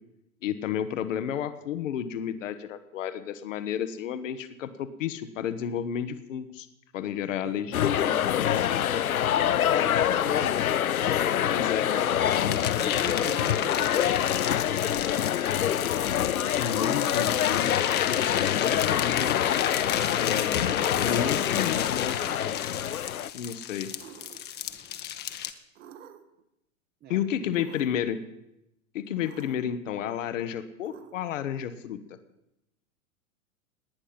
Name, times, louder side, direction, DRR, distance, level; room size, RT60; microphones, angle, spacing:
voice 1, 0.4-6.7 6.9-9.2 11.5-11.9 16.5-17.7 18.1-19.4 20.1-22.5 23.3-23.9 27.1-28.2 28.9-32.0, left 9 dB, 65° left, 11 dB, 1.1 m, -32 dB
sound 1, 7.7-23.3, left 10 dB, 85° left, 0.6 m, -26 dB
voice 2, 9.8-10.7 11.9-14.3 27.0-27.6, right 8 dB, 25° right, 9 dB, 0.8 m, -43 dB
sound 2, 12.3-25.5, left 10 dB, 25° left, 0.9 m, -33 dB
sound 3, 20.5-21.1 22.2-22.9 24.0-24.7 25.8-26.4 27.5-28.1 29.1-29.8 30.8-31.6, right 9 dB, 60° right, 1.4 m, -50 dB
19.0 x 10.0 x 5.8 m, 0.85 s
figure-of-eight pair, 100°, 42 cm